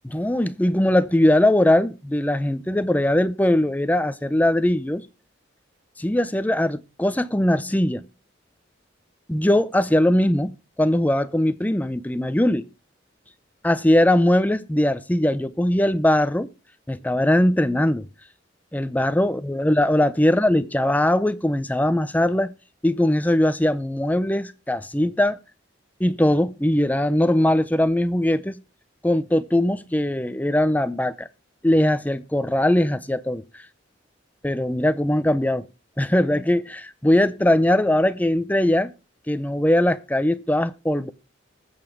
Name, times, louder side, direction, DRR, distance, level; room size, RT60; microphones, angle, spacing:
voice 1, 0.0-5.0 6.0-8.0 9.3-10.5 10.8-12.7 13.6-16.5 16.9-18.1 18.7-22.5 22.8-25.4 26.0-28.6 29.0-31.3 31.6-33.6 34.4-35.7 36.0-38.9 39.3-41.1, left 1 dB, 10° left, 0.5 m, -20 dB
20.5 x 7.1 x 3.7 m
head